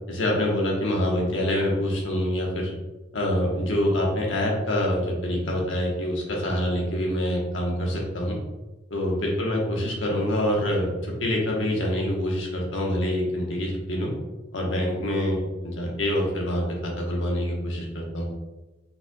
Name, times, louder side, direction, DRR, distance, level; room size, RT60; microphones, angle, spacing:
voice 1, 0.1-2.7 3.1-8.4 8.9-14.1 14.5-18.3, left 1 dB, 75° left, -1 dB, 1.2 m, -26 dB
5.4 x 4.3 x 2.3 m, 1.1 s
head